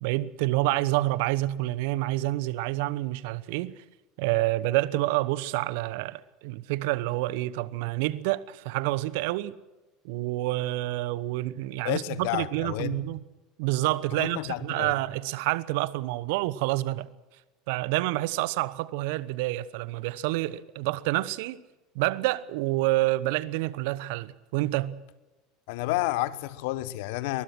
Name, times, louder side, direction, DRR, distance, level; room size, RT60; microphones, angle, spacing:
voice 1, 0.0-3.7 4.2-9.5 10.0-13.2 13.6-17.1 17.7-21.6 21.9-25.0, right 18 dB, 65° right, 1.0 m, -28 dB
voice 2, 11.8-13.0 14.1-14.9 25.7-27.4, left 17 dB, 65° left, 1.2 m, -30 dB
23.0 x 20.5 x 6.2 m
hypercardioid pair, 75°, 0 cm